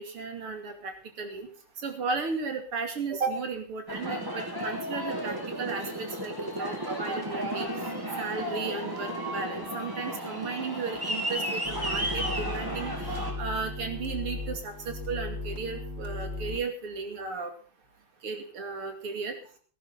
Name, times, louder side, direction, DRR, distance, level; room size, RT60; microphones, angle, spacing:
voice 1, 0.0-1.5 1.8-7.7 8.2-12.9 13.4-17.5 18.2-19.3, right 4 dB, 85° right, 5 dB, 3.5 m, -35 dB
Aircraft, 3.9-13.3, equal, 10° right, 3.2 m, -33 dB
sound 1, 11.6-16.6, left 2 dB, 35° left, 3.5 m, -36 dB
17.0 x 14.0 x 4.1 m, 0.41 s
omnidirectional pair, 2.4 m